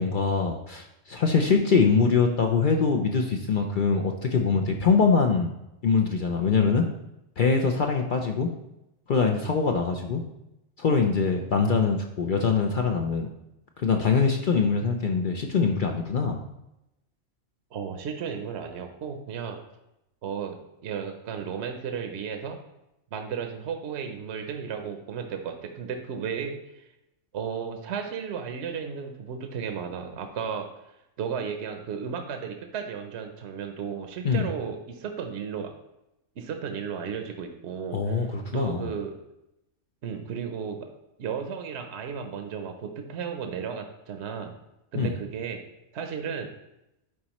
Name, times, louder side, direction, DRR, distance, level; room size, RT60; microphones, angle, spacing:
voice 1, 0.0-5.5 5.8-6.8 7.4-8.5 9.1-10.2 10.8-13.3 13.8-16.4 34.2-34.5 37.9-38.9 44.9-45.1, left 5 dB, 60° left, 3 dB, 0.5 m, -23 dB
voice 2, 17.7-19.6 20.2-22.6 23.1-26.9 27.3-30.7 31.2-35.7 36.4-39.1 40.0-40.9 41.2-44.5 44.9-45.6 45.9-46.5, right 7 dB, 60° right, 5 dB, 0.9 m, -34 dB
11.0 x 4.1 x 3.0 m, 0.89 s
omnidirectional pair, 1.4 m